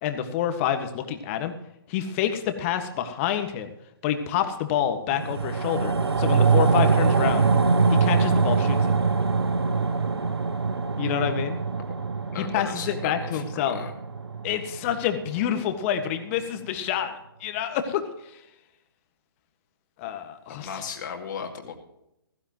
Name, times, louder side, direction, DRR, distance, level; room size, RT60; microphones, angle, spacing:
voice 1, 0.0-1.5 1.9-3.7 4.0-5.9 6.2-7.5 7.9-8.9 11.0-11.6 12.4-13.8 14.4-18.0 20.0-20.7, left 9 dB, 30° left, 7 dB, 1.7 m, -27 dB
sound 1, 5.1-15.7 16.0-16.1, right 4 dB, 90° right, 0.9 m, -24 dB
voice 2, 12.3-13.9 20.5-21.8, left 7 dB, 50° left, 2 dB, 2.3 m, -36 dB
15.5 x 15.5 x 3.1 m, 0.83 s
hypercardioid pair, 140°, 13 cm